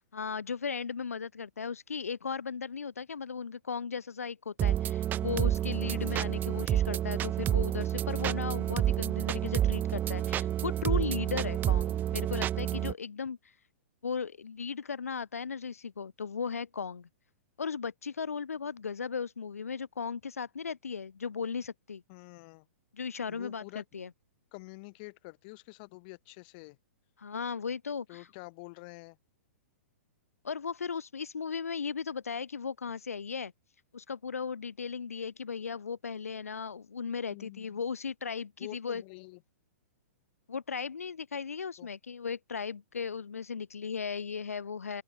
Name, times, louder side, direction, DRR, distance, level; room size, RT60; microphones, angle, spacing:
voice 1, 0.1-13.5 14.0-17.1 17.6-22.0 22.9-24.1 27.2-28.3 30.4-33.5 33.9-39.0 40.5-45.0, left 6 dB, 80° left, 1.9 m, -36 dB
sound 1, 4.6-12.9, right 11 dB, 25° right, 0.9 m, -29 dB
voice 2, 5.8-6.3 22.1-22.6 23.3-23.8 24.5-26.8 28.1-29.2 37.3-37.8 38.6-39.4 41.8-41.9, left 28 dB, 45° left, 3.0 m, -48 dB
open air
hypercardioid pair, 115°, 8 cm